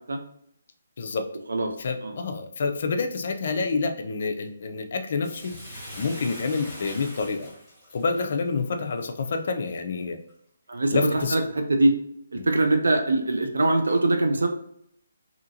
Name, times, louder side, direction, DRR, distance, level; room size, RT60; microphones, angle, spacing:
voice 1, 1.0-1.3 1.8-5.5 6.0-7.5 7.9-10.2 10.9-11.4 12.4-12.5, left 4 dB, 55° left, 5 dB, 0.4 m, -28 dB
Bathtub (filling or washing), 5.2-9.7 10.3-10.4, left 1 dB, ahead, 0.9 m, -43 dB
voice 2, 10.7-11.4 11.7-11.9 12.3-14.5, right 2 dB, 85° right, 4 dB, 0.5 m, -22 dB
2.8 x 2.5 x 2.7 m, 0.71 s
hypercardioid pair, 160°, 0 cm